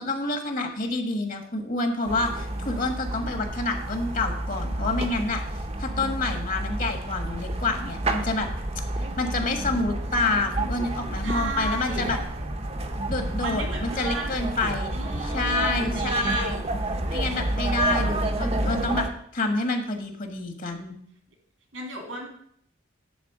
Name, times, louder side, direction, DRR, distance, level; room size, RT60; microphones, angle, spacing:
voice 1, 0.0-5.4 5.8-8.5 9.2-12.2 13.1-15.0 15.2-16.6 17.1-19.1 19.3-21.0, left 2 dB, 45° left, 5 dB, 1.5 m, -28 dB
sound 1, 2.1-19.1, right 1 dB, 30° right, 0.9 m, -30 dB
voice 2, 11.2-12.1 13.4-14.4 14.9-16.7 21.7-22.3, right 2 dB, 80° right, 1 dB, 2.9 m, -34 dB
10.0 x 4.2 x 7.3 m, 0.66 s
head